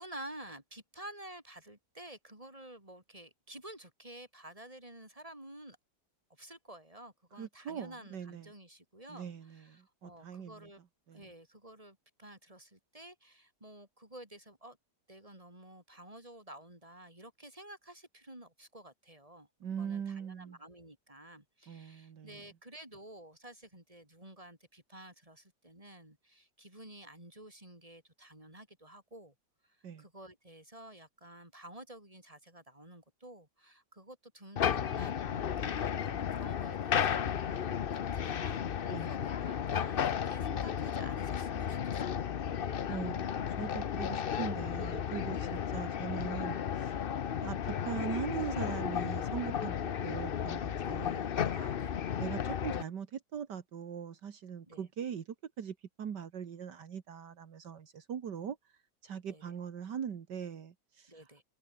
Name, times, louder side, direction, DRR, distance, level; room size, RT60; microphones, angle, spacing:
voice 1, 0.0-5.8 6.3-10.8 11.1-14.8 15.1-19.5 19.8-29.3 29.6-42.2 45.5-45.8 50.8-51.0 51.8-52.1 54.7-54.9 59.3-59.4 61.1-61.4, right 1 dB, 20° right, 6.5 m, -51 dB
voice 2, 7.4-8.5 9.1-10.7 11.1-11.3 19.6-20.6 21.7-22.4 29.8-30.1 38.9-39.1 42.9-47.1 47.4-51.8 52.2-55.3 55.6-58.6 59.0-61.2, right 8 dB, 75° right, 2.1 m, -41 dB
sound 1, 34.6-52.8, left 8 dB, 55° left, 0.6 m, -34 dB
omnidirectional pair, 1.9 m